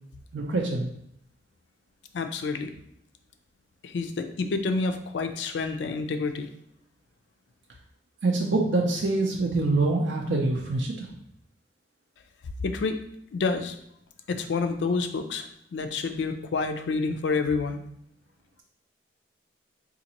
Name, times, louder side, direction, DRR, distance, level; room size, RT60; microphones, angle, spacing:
voice 1, 0.3-0.9 8.2-11.1, right 2 dB, 85° right, -1 dB, 0.5 m, -25 dB
voice 2, 2.1-2.7 3.8-6.5 12.6-13.0 13.3-13.8 14.3-17.8, left 4 dB, 80° left, 7 dB, 0.4 m, -28 dB
4.0 x 2.5 x 2.9 m, 0.73 s
head